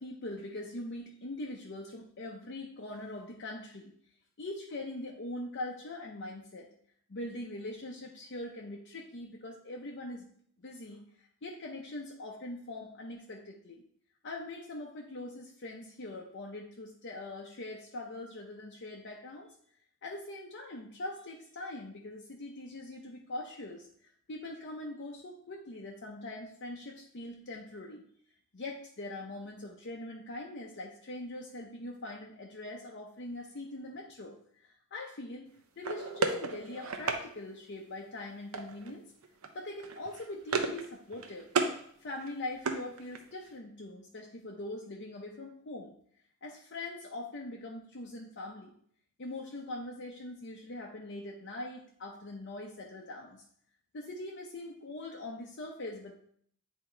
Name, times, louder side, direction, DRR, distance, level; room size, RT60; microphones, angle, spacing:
voice 1, 0.0-3.9 4.4-6.7 7.1-10.3 10.6-13.8 14.2-19.5 20.0-28.1 28.5-35.5 35.8-39.0 39.5-41.5 42.0-45.9 46.4-48.8 49.2-53.4 53.9-56.1, left 2 dB, 50° left, 0 dB, 0.7 m, -42 dB
sound 1, 35.8-37.2 38.5-38.9 39.2-39.5 39.8-40.9 41.1-41.8 42.2-43.4, right 4 dB, 70° right, 0.7 m, -33 dB
8.6 x 2.9 x 4.4 m, 0.63 s
head